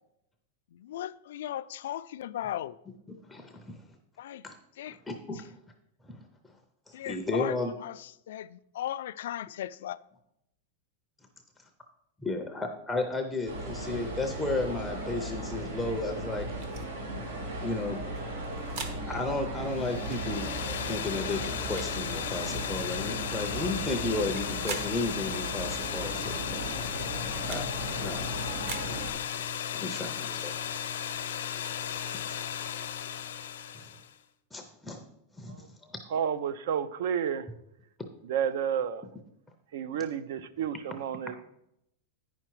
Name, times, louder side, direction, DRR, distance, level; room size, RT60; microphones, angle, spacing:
voice 1, 0.7-2.8 4.2-4.4 4.7-5.0 5.3-5.4 6.9-10.0, left 12 dB, 70° left, 0.3 m, -37 dB
voice 2, 3.3-3.8 4.4-4.6 5.1-5.4 6.1-6.2 6.9-7.7 12.2-16.5 16.8-16.9 17.6-18.0 19.1-20.5 20.9-26.7 27.5-27.6 28.0-28.4 28.9-29.0 29.7-30.6 33.7-33.9 34.5-35.0 35.3-35.7, left 2 dB, 5° left, 0.5 m, -33 dB
sound 1, 13.5-29.1, right 1 dB, 90° right, 2.0 m, -37 dB
sound 2, 16.6-16.9 18.2-19.0 20.0-20.2 21.3-21.9 22.7-22.9 24.2-24.9 25.7-25.9 26.9-27.7 28.5-28.9, right 5 dB, 45° right, 0.9 m, -42 dB
sound 3, 19.7-34.1, left 9 dB, 90° left, 0.8 m, -35 dB
voice 3, 36.1-37.5 38.3-39.0 39.7-41.4, right 8 dB, 65° right, 0.5 m, -31 dB
9.0 x 5.8 x 4.6 m
supercardioid pair, 165°, 0 cm